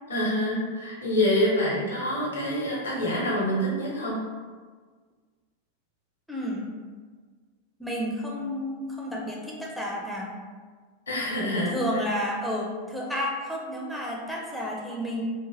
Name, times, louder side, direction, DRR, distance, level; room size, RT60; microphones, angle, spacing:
voice 1, 0.1-4.3 11.1-12.0, equal, 80° left, -5 dB, 0.9 m, -26 dB
voice 2, 6.3-6.7 7.8-10.3 11.7-15.2, equal, ahead, -3 dB, 0.4 m, -31 dB
3.1 x 2.2 x 2.4 m, 1.5 s
figure-of-eight pair, 90°, 0 cm